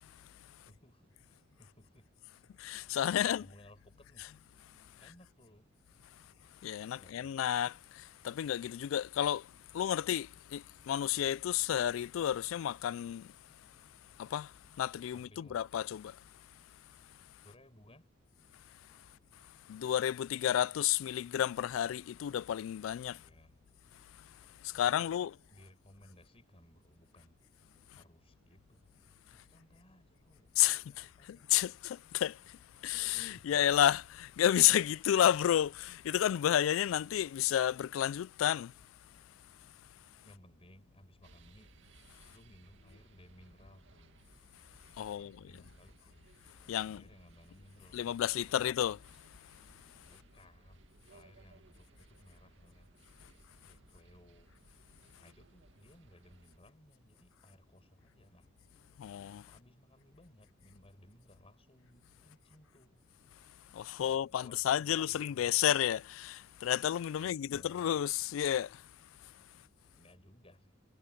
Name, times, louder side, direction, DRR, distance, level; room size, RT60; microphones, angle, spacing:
voice 1, 0.6-2.5 3.1-4.3 5.0-5.7 7.0-7.4 15.1-15.7 17.4-18.1 23.1-23.6 25.0-27.4 27.9-31.5 33.2-33.6 40.2-41.8 42.3-44.2 45.0-46.3 46.8-48.1 50.1-53.3 53.6-54.5 55.2-58.5 59.5-63.1 64.0-65.7 67.1-68.0 69.5-70.8, left 1 dB, 30° left, 5.9 m, -61 dB
voice 2, 2.6-3.4 6.6-9.5 9.7-13.3 14.2-14.5 14.8-16.2 19.7-23.2 24.6-25.3 30.6-32.4 32.8-38.7 45.0-45.4 46.7-47.0 47.9-49.0 59.0-59.4 63.7-68.8, left 11 dB, 80° left, 0.3 m, -31 dB
sound 1, 41.2-56.6, right 2 dB, 70° right, 2.1 m, -62 dB
head